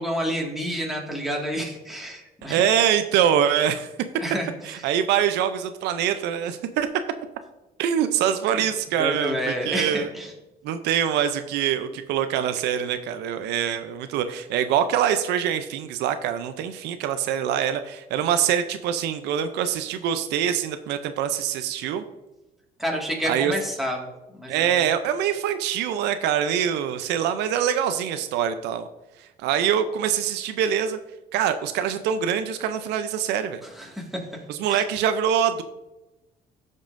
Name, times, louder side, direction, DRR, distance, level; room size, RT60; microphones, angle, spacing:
voice 1, 0.0-2.6 4.2-4.8 8.5-8.6 9.0-10.3 22.8-24.7 33.6-34.2 34.7-34.9, equal, ahead, -1 dB, 1.9 m, -29 dB
voice 2, 2.4-3.9 4.6-6.9 7.8-10.1 10.6-22.0 23.3-23.5 24.5-28.9 29.2-31.0 31.3-33.6 34.5-35.6, right 9 dB, 85° right, 10 dB, 0.5 m, -24 dB
13.0 x 5.4 x 2.6 m, 1.0 s
cardioid pair, 110°, 17 cm